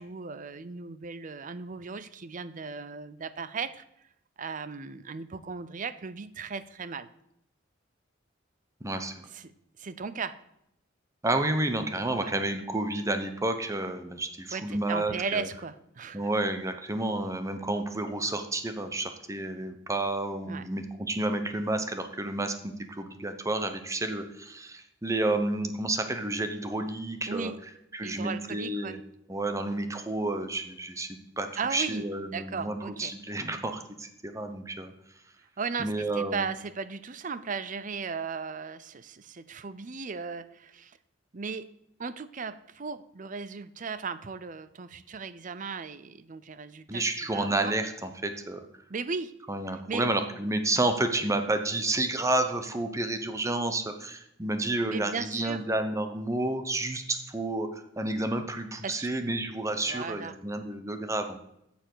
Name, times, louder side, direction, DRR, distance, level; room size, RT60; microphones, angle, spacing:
voice 1, 0.0-3.8 4.4-7.1 9.3-9.5 9.8-10.4 12.2-12.3 14.5-16.3 20.4-20.6 27.3-27.6 28.0-29.0 31.6-32.0 32.3-33.1 35.6-41.0 41.3-41.7 42.0-47.0 47.3-47.7 48.9-49.3 49.9-50.1 54.9-55.6 58.8-59.1 59.9-60.3, right 5 dB, 45° right, 14 dB, 0.6 m, -36 dB
voice 2, 8.8-9.1 11.2-15.5 16.1-27.5 27.9-29.0 29.3-34.9 35.8-36.5 46.9-48.7 49.5-61.4, right 2 dB, 15° right, 7 dB, 0.9 m, -30 dB
8.7 x 7.0 x 7.9 m, 0.79 s
head